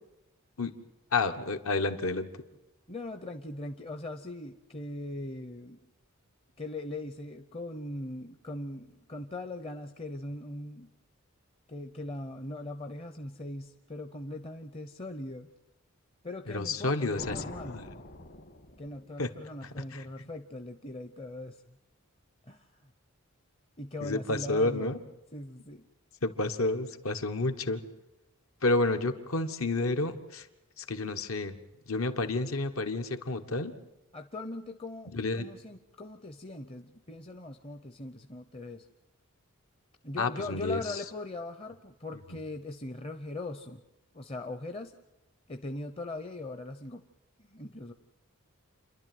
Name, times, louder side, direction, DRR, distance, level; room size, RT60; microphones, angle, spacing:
voice 1, 1.1-2.3 16.5-17.4 17.7-17.8 19.2-19.3 19.9-20.1 24.0-25.0 26.2-27.8 28.6-30.5 30.8-31.6 31.9-33.7 35.1-35.5 40.2-40.8, left 2 dB, 75° left, 7 dB, 1.4 m, -30 dB
voice 2, 2.9-5.8 6.6-10.9 11.7-15.5 16.2-17.8 18.8-21.8 22.5-22.9 23.8-25.0 25.3-25.9 34.1-38.9 40.0-43.8 44.1-44.9 45.5-47.1 47.4-47.9, left 2 dB, 25° left, 8 dB, 0.7 m, -40 dB
sound 1, 17.1-19.4, left 2 dB, 50° left, 1.6 m, -44 dB
28.5 x 11.5 x 9.3 m, 0.94 s
head